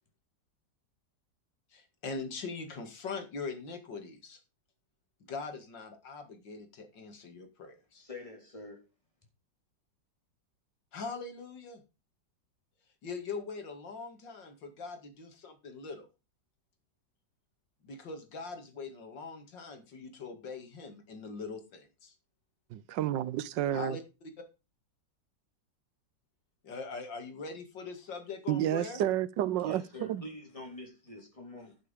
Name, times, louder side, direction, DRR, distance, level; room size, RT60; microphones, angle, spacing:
voice 1, 1.7-4.4 5.3-8.0 10.9-11.8 13.0-16.1 17.8-22.1 23.7-24.0 26.6-29.0, left 4 dB, 85° left, 2.7 m, -42 dB
voice 2, 7.9-8.8 29.6-31.8, left 2 dB, 15° left, 3.8 m, -46 dB
voice 3, 22.7-24.0 28.5-30.2, right 12 dB, 80° right, 1.4 m, -30 dB
11.0 x 6.9 x 5.2 m
omnidirectional pair, 1.9 m